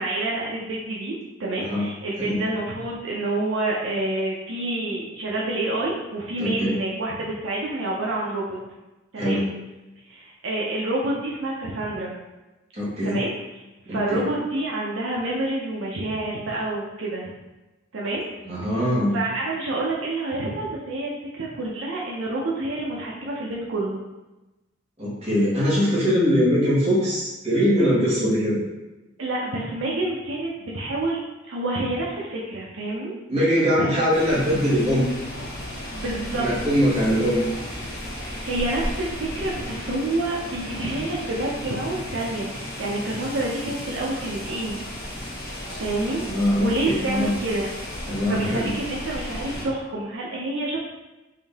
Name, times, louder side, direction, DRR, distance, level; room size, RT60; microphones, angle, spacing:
voice 1, 0.0-8.6 9.1-9.4 10.0-12.2 13.0-13.3 13.9-17.3 17.9-18.2 18.7-18.8 19.1-24.0 29.2-31.2 31.5-33.1 33.7-33.9 35.9-36.4 38.4-44.8 45.8-46.2 46.6-47.7 48.3-50.8, right 2 dB, 80° right, -4 dB, 0.6 m, -28 dB
voice 2, 6.4-6.7 9.1-9.4 12.7-13.2 13.9-14.2 18.4-19.1 25.0-28.6 33.3-35.1 36.4-37.4 46.3-47.3 48.1-48.7, equal, 30° right, -8 dB, 1.4 m, -22 dB
sound 1, 34.1-49.7, left 1 dB, 50° left, 1.3 m, -34 dB
3.6 x 2.7 x 3.5 m, 1.1 s
head